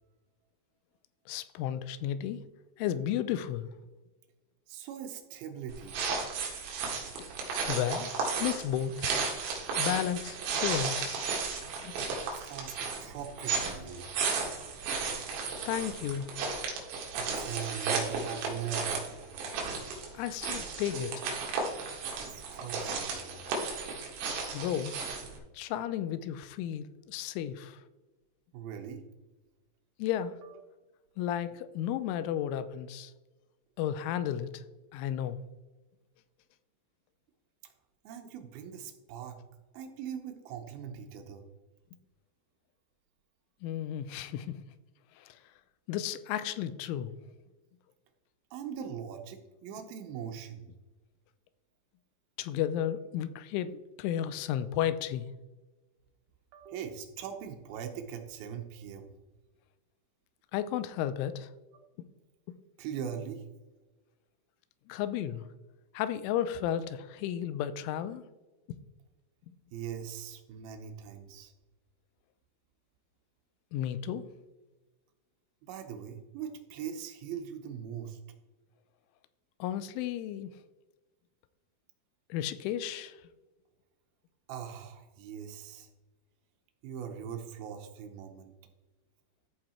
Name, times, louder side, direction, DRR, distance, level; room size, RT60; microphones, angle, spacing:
voice 1, 1.3-2.4 2.8-3.7 7.7-9.1 9.8-11.2 11.8-11.9 15.6-16.3 20.1-21.4 24.5-25.0 25.5-27.8 30.0-30.4 31.2-33.1 33.8-34.6 34.9-35.4 43.6-44.7 45.2-45.4 45.9-47.1 52.4-55.3 60.5-61.5 64.9-65.5 65.9-68.2 68.7-68.8 73.7-74.3 79.6-80.5 82.3-83.2, left 10 dB, 85° left, 3.0 m, -33 dB
voice 2, 4.7-6.0 12.3-14.1 17.2-18.9 22.3-23.4 28.5-29.0 30.4-30.6 37.6-37.7 38.0-39.4 39.7-41.4 48.5-50.7 56.5-59.1 61.7-61.8 62.8-63.4 69.7-71.5 75.6-78.2 84.5-85.9 86.8-88.5, right 8 dB, 85° right, 2.1 m, -41 dB
sound 1, 5.7-25.4, right 4 dB, 70° right, 3.8 m, -34 dB
14.0 x 4.8 x 4.3 m
omnidirectional pair, 5.6 m